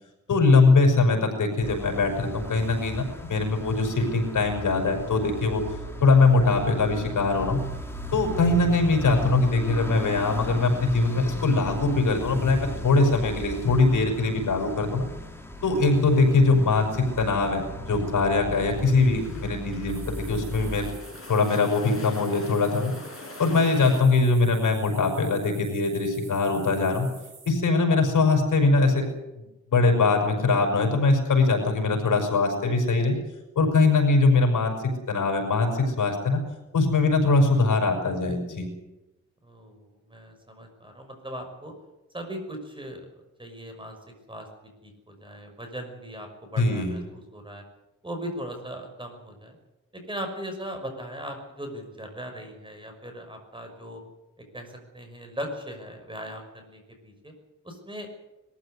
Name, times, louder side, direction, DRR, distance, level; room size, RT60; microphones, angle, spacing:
voice 1, 0.3-5.6 6.0-7.6 8.1-15.1 15.6-20.9 21.3-22.9 23.4-27.1 27.4-29.0 29.4-29.5 29.7-33.1 33.6-34.7 35.1-36.4 36.7-38.7 46.6-47.0, left 3 dB, 80° left, 3 dB, 5.7 m, -22 dB
sound 1, 1.6-20.9, left 1 dB, 10° left, 3.0 m, -36 dB
sound 2, 18.5-24.0, left 3 dB, 45° left, 5.2 m, -44 dB
sound 3, 19.9-27.5, right 5 dB, 60° right, 6.2 m, -49 dB
voice 2, 39.4-41.7 42.1-43.1 43.4-44.0 44.3-44.5 44.8-47.6 48.0-49.6 49.9-54.0 54.5-57.3 57.6-58.1, equal, 15° right, 4 dB, 5.9 m, -38 dB
21.5 x 14.5 x 9.9 m, 0.99 s
wide cardioid pair, 115°, 30 cm